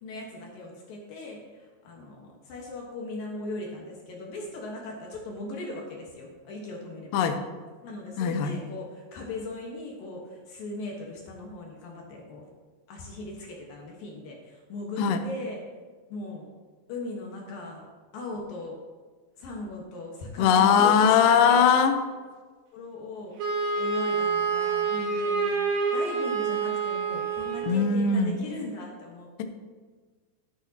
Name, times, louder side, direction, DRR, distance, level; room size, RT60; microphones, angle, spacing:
voice 1, 0.0-7.4 7.8-12.4 12.9-15.6 16.1-16.5 16.9-17.8 18.1-18.8 19.4-21.6 22.7-25.5 25.9-29.4, left 2 dB, 65° left, -1 dB, 2.7 m, -38 dB
voice 2, 8.2-8.5 15.0-15.2 20.4-22.0 27.7-28.4, left 7 dB, 85° left, 7 dB, 1.9 m, -20 dB
Wind instrument woodwind instrument, 23.4-27.8, right 5 dB, 65° right, 1.8 m, -27 dB
12.0 x 10.5 x 2.9 m, 1.4 s
omnidirectional pair, 5.1 m